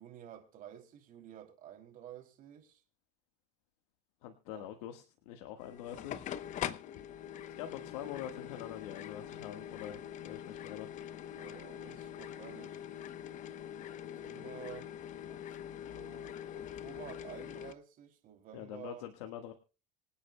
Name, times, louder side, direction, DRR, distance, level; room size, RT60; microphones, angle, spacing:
voice 1, 0.0-2.8 4.5-4.7 11.3-12.8 14.2-14.9 15.3-15.4 15.6-19.1, right 10 dB, 45° right, 2.9 m, -51 dB
voice 2, 4.2-6.3 7.6-10.9 18.5-19.5, left 11 dB, 80° left, 1.5 m, -45 dB
sound 1, 5.6-17.7, left 10 dB, 40° left, 0.9 m, -44 dB
26.0 x 8.7 x 2.2 m
supercardioid pair, 120°, 19 cm